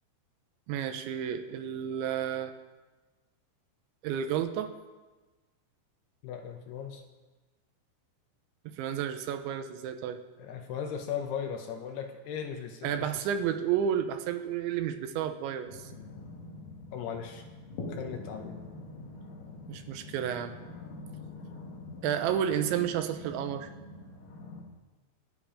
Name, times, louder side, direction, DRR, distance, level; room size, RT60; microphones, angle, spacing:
voice 1, 0.7-2.5 4.0-4.7 8.8-10.2 12.8-15.9 19.7-20.6 22.0-23.7, right 9 dB, 85° right, 8 dB, 3.2 m, -31 dB
voice 2, 6.2-7.0 10.4-13.3 16.9-17.5 17.9-18.6, left 7 dB, 75° left, 5 dB, 2.7 m, -37 dB
sound 1, 15.7-24.6, left 3 dB, 55° left, 3.3 m, -44 dB
24.0 x 9.6 x 5.0 m, 1.2 s
omnidirectional pair, 5.4 m